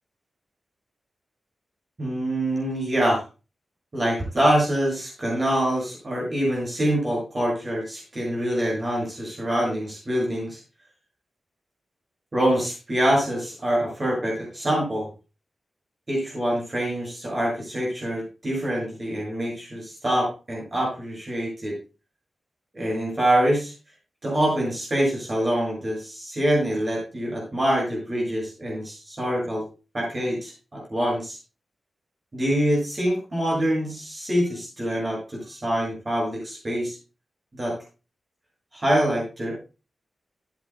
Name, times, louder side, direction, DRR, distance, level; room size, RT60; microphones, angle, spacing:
voice 1, 2.0-3.2 3.9-10.6 12.3-15.1 16.1-21.8 22.7-23.7 24.2-29.7 29.9-31.4 32.3-37.0 37.5-37.8 38.7-39.6, right 1 dB, 30° right, -2 dB, 7.1 m, -25 dB
14.0 x 11.5 x 2.3 m, 0.31 s
wide cardioid pair, 155°, 0 cm